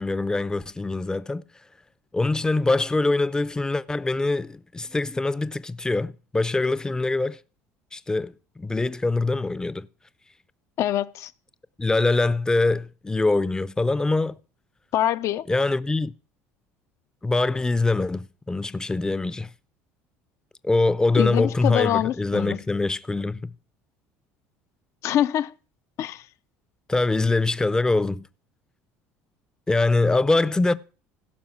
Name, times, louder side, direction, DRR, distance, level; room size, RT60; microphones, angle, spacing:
voice 1, 0.0-1.4 2.1-7.4 7.9-9.9 11.8-14.4 15.5-16.1 17.2-19.5 20.6-23.5 26.9-28.3 29.7-30.7, left 2 dB, 10° left, 0.5 m, -23 dB
voice 2, 10.8-11.3 14.9-15.5 21.2-22.6 25.0-25.5 26.0-26.2, left 12 dB, 60° left, 0.5 m, -24 dB
16.0 x 5.6 x 5.9 m
supercardioid pair, 95°, 6 cm